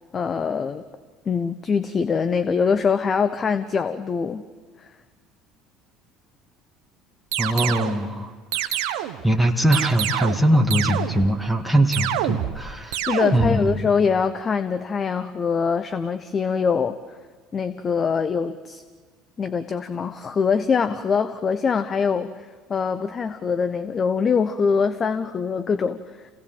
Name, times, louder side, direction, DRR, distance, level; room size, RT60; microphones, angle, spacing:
voice 1, 0.1-0.8 1.3-4.4 4.8-4.9 13.1-17.0 17.5-18.8 19.4-26.3, left 5 dB, 35° left, 11 dB, 0.9 m, -23 dB
sound 1, 7.3-8.0 8.5-9.2 9.7-10.5 10.7-11.3 11.9-12.6 12.9-13.6, right 11 dB, 70° right, 1.1 m, -26 dB
voice 2, 7.4-9.0 9.2-13.8, right 1 dB, ahead, 0 dB, 2.1 m, -22 dB
28.0 x 17.5 x 7.9 m, 1.5 s
hypercardioid pair, 65°, 0 cm